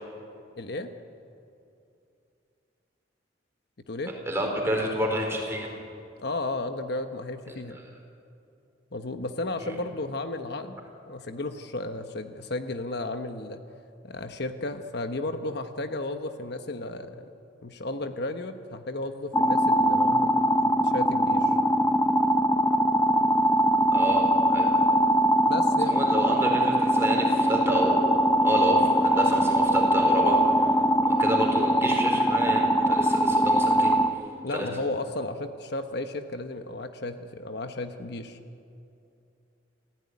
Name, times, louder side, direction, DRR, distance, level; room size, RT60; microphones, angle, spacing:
voice 1, 0.6-0.9 3.9-4.1 6.2-7.8 8.9-10.8 11.1-13.6 14.0-17.2 17.6-20.3 20.8-21.6 25.5-26.0 34.4-38.4, left 2 dB, 60° left, 7 dB, 1.1 m, -33 dB
voice 2, 4.3-5.7 9.6-9.8 23.9-24.7 25.9-30.8 31.1-33.9 34.5-34.7, equal, 15° right, 0 dB, 4.4 m, -29 dB
sound 1, 19.3-34.1, equal, 15° left, 1.0 m, -22 dB
27.0 x 15.5 x 9.7 m, 2.6 s
head